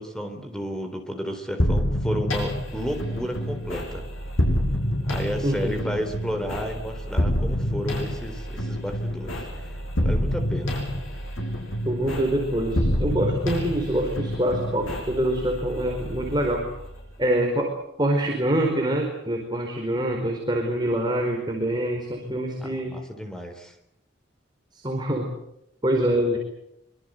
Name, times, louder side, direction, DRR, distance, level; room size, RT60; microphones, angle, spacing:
voice 1, 0.0-4.1 5.1-9.7 10.0-10.8 22.6-23.7, equal, 5° left, 6 dB, 3.9 m, -32 dB
sound 1, 1.6-17.2, equal, 90° left, 6.7 m, -28 dB
voice 2, 5.4-5.8 11.8-16.7 17.2-23.0 24.7-25.3 25.8-26.4, right 1 dB, 20° right, 1 dB, 4.8 m, -25 dB
25.5 x 24.5 x 8.1 m, 0.78 s
head